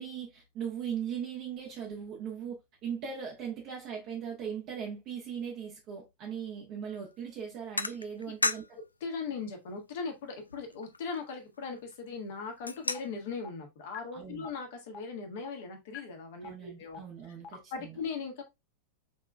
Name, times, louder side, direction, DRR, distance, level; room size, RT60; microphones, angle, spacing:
voice 1, 0.0-8.8 14.1-14.5 16.4-18.0, right 7 dB, 40° right, 1.1 m, -39 dB
sound 1, 6.9-7.1 7.8-8.9 9.3-9.4 9.9-10.0 10.3-12.0 12.4-13.3, left 2 dB, 80° left, 0.3 m, -35 dB
voice 2, 9.0-17.0 17.7-18.4, left 5 dB, 55° left, 1.4 m, -39 dB
sound 2, 12.9-13.0 13.4-13.5 13.9-14.0 14.4-14.5 14.9-15.0 15.4-15.5 15.9-16.0 16.4-16.5 16.9-17.0 17.4-17.5, left 8 dB, 35° left, 0.6 m, -42 dB
5.3 x 3.6 x 2.2 m
figure-of-eight pair, 90°, 0 cm